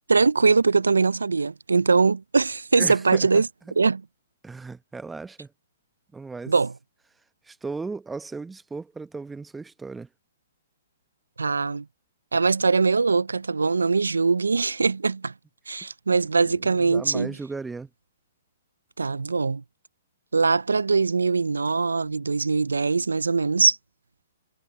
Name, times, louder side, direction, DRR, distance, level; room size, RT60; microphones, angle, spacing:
voice 1, 0.1-3.5 3.8-4.0 6.5-6.7 11.4-11.9 12.3-15.3 15.7-17.3 19.0-19.6 20.3-23.8, right 4 dB, 90° right, 0.3 m, -22 dB
voice 2, 2.7-3.4 4.4-5.5 6.1-6.5 7.4-10.1 16.5-17.9, right 4 dB, 10° right, 0.9 m, -36 dB
hypercardioid pair, 125°, 0 cm